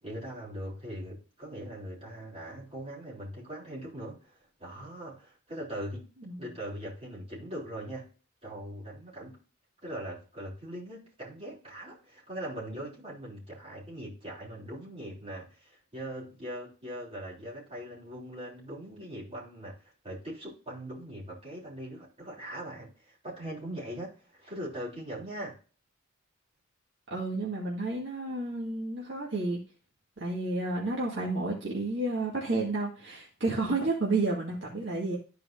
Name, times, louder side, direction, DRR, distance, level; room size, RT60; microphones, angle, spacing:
voice 1, 0.0-6.1 6.4-8.1 8.4-9.4 9.8-25.6, right 1 dB, 30° right, -5 dB, 3.5 m, -41 dB
voice 2, 27.1-29.6 30.2-35.2, right 2 dB, 60° right, -4 dB, 1.9 m, -31 dB
13.0 x 4.7 x 2.6 m, 0.37 s
head